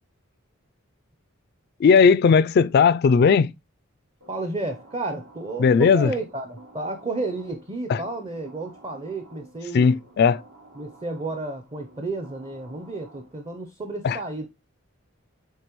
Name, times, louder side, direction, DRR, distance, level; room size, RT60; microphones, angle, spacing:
voice 1, 1.8-3.5 5.6-6.1 7.9-8.0 9.7-10.4 14.0-14.2, left 5 dB, 50° left, 0.3 m, -17 dB
sound 1, 4.2-13.7, right 2 dB, 75° right, 2.6 m, -51 dB
voice 2, 4.3-10.0 10.8-14.5, right 2 dB, 25° right, 0.7 m, -32 dB
8.2 x 3.7 x 3.0 m
head